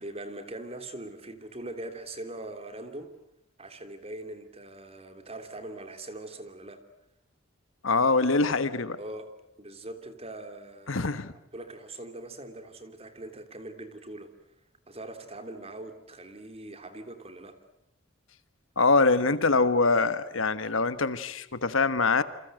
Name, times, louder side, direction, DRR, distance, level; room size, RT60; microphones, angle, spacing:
voice 1, 0.0-3.1 3.6-6.8 8.2-9.3 9.6-11.2 11.5-14.3 14.9-17.6, right 2 dB, 30° right, 7 dB, 3.1 m, -42 dB
voice 2, 7.8-9.0 10.9-11.3 18.8-22.2, left 3 dB, 75° left, 13 dB, 1.4 m, -24 dB
28.5 x 26.5 x 7.8 m, 0.78 s
head